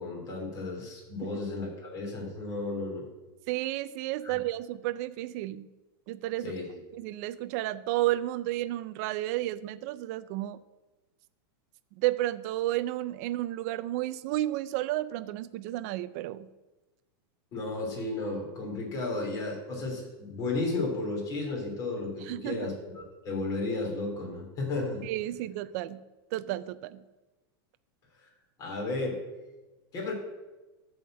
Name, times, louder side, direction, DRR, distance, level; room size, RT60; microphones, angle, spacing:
voice 1, 0.0-3.0 4.2-4.4 6.4-6.6 17.5-25.0 28.2-28.3 28.6-29.2 29.9-30.1, left 3 dB, 25° left, -1 dB, 3.0 m, -33 dB
voice 2, 3.5-5.7 6.1-6.6 6.9-10.6 12.0-16.5 22.2-22.6 25.0-26.0 26.3-27.0, right 15 dB, 40° right, 13 dB, 0.4 m, -32 dB
13.0 x 4.3 x 7.4 m, 1.1 s
supercardioid pair, 170°, 13 cm